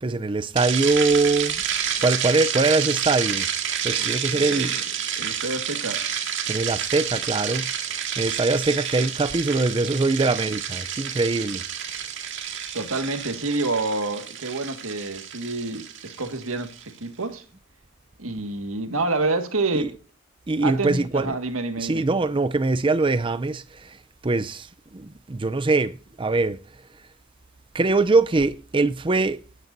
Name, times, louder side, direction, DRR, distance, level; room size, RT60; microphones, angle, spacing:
voice 1, 0.0-1.6 2.0-3.5 3.8-4.9 6.5-11.6 19.7-20.0 20.5-21.4 21.8-27.1 27.7-29.4, right 3 dB, 25° right, 0.5 m, -23 dB
sound 1, 0.6-16.8, right 8 dB, 60° right, 2.0 m, -29 dB
voice 2, 3.9-4.7 5.2-6.1 12.7-17.4 18.2-19.9 20.6-22.0, right 3 dB, 90° right, 1.9 m, -28 dB
18.5 x 9.5 x 2.6 m
head